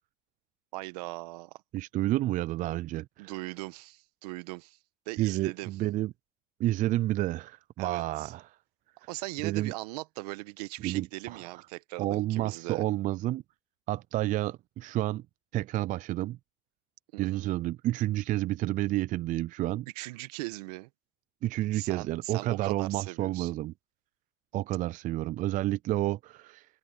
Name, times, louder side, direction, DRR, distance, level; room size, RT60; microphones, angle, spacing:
voice 1, 0.7-1.6 3.2-4.8 5.0-5.7 7.8-8.3 9.0-12.8 17.1-17.5 19.9-20.9 21.7-23.5, right 21 dB, 75° right, 1.5 m, -39 dB
voice 2, 1.7-3.3 5.2-6.1 6.6-8.4 9.4-9.7 10.8-11.4 12.0-13.4 13.9-15.2 15.5-16.4 17.2-19.9 21.4-23.7 24.5-26.7, right 15 dB, 40° right, 0.4 m, -30 dB
supercardioid pair, 100°, 20 cm